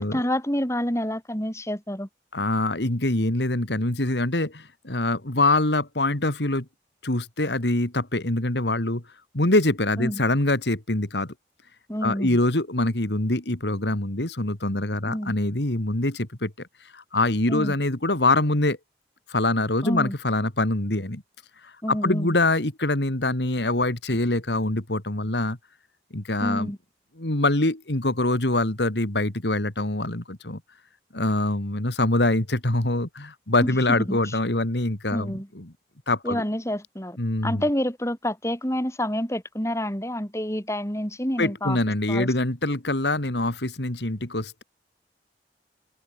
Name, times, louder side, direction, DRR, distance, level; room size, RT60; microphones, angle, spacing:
voice 1, 0.0-2.1 10.0-10.2 11.9-12.4 15.1-15.3 17.5-17.7 19.8-20.1 21.8-22.3 26.4-26.8 33.6-34.4 35.1-35.5 36.2-37.2 37.4-41.8 42.1-42.3, equal, 15° left, 4.9 m, -28 dB
voice 2, 2.3-6.6 7.0-9.0 9.3-11.3 12.0-16.5 16.9-18.8 19.3-21.2 21.6-25.6 26.1-26.7 27.2-30.6 31.1-35.7 36.1-36.4 37.2-37.6 41.4-44.6, left 2 dB, 80° left, 2.8 m, -24 dB
head